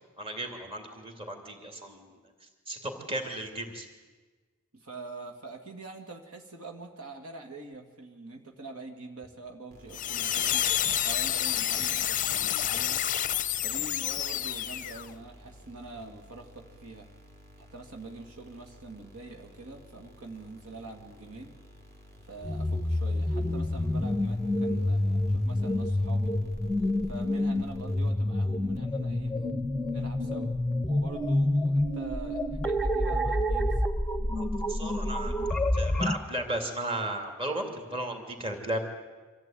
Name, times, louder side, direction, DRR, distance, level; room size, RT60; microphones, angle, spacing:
voice 1, 0.2-2.1 2.7-3.9 34.4-38.9, right 1 dB, 25° right, 4 dB, 2.8 m, -35 dB
voice 2, 4.7-10.7 11.0-13.0 13.6-17.1 17.7-21.6 22.3-26.4 27.1-29.3 29.9-30.5 30.9-33.8, right 3 dB, 70° right, 4 dB, 2.1 m, -44 dB
sound 1, 9.7-28.5, left 1 dB, 45° right, 3.2 m, -53 dB
sound 2, 9.9-15.1, left 11 dB, 35° left, 0.6 m, -29 dB
sound 3, 22.4-36.2, left 1 dB, 5° left, 0.9 m, -28 dB
25.0 x 15.0 x 9.1 m, 1.4 s
head